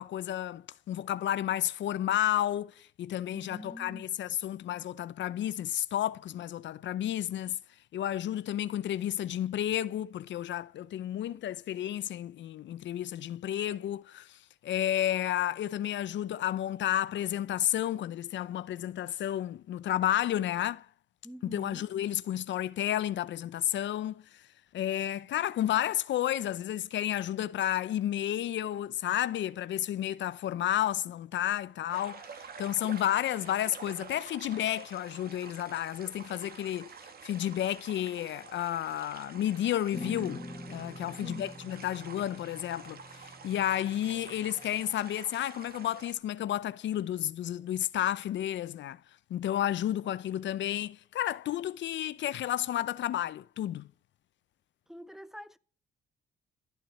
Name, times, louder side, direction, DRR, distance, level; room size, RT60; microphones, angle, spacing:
voice 1, 0.0-7.6 7.9-20.9 21.4-24.5 24.7-49.0 49.3-53.9, left 12 dB, 65° left, 0.6 m, -31 dB
voice 2, 3.3-4.0 21.2-21.9 41.2-41.6 54.9-55.6, equal, ahead, 0.9 m, -45 dB
sound 1, 31.9-46.1, right 6 dB, 50° right, 2.0 m, -49 dB
sound 2, 39.9-44.9, left 2 dB, 20° left, 2.5 m, -45 dB
15.0 x 7.3 x 9.9 m
cardioid pair, 90°, 20 cm